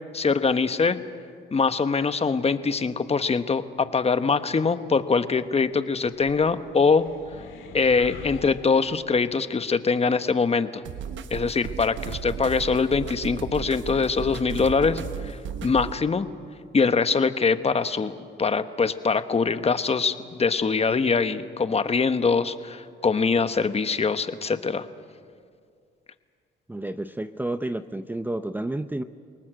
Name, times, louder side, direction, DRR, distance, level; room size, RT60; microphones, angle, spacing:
voice 1, 0.1-1.0 1.5-7.1 7.7-10.8 11.3-16.3 16.7-18.1 18.4-24.9, left 4 dB, 30° left, 11 dB, 1.2 m, -23 dB
sound 1, 6.0-9.4, left 6 dB, 80° left, 2.4 m, -44 dB
sound 2, 10.9-15.9, right 8 dB, 75° right, 1.2 m, -35 dB
voice 2, 26.7-29.0, right 1 dB, 10° right, 11 dB, 0.7 m, -30 dB
29.0 x 19.0 x 7.8 m, 2.2 s
cardioid pair, 90°, 20 cm